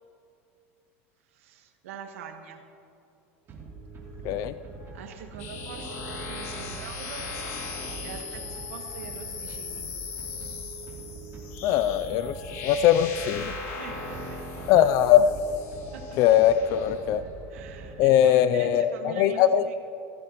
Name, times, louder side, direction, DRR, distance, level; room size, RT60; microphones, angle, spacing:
voice 1, 1.3-2.6 4.9-7.3 8.0-9.9 13.6-14.5 15.9-16.4 17.5-19.8, right 6 dB, 90° right, 5 dB, 1.4 m, -43 dB
sound 1, 3.5-18.5, right 3 dB, 35° right, 2.8 m, -43 dB
sound 2, 5.4-17.0, left 4 dB, 80° left, 2.5 m, -39 dB
voice 2, 11.6-12.4 12.6-13.5 14.7-15.4 16.2-17.2 18.0-19.6, left 10 dB, 55° left, 13 dB, 0.4 m, -21 dB
15.0 x 14.0 x 3.0 m, 3.0 s
supercardioid pair, 120°, 7 cm